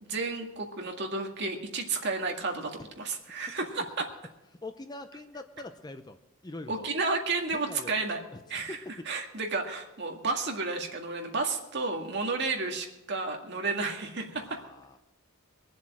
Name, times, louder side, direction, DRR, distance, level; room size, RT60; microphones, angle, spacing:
voice 1, 0.0-4.1 6.7-8.2 8.5-8.8 9.1-14.6, right 3 dB, 50° right, 2 dB, 2.0 m, -32 dB
voice 2, 4.6-6.2 6.4-6.9 7.5-7.9 8.3-8.4 8.7-9.1 14.3-15.0, left 2 dB, 20° left, 8 dB, 0.6 m, -43 dB
22.5 x 7.4 x 6.1 m, 0.99 s
head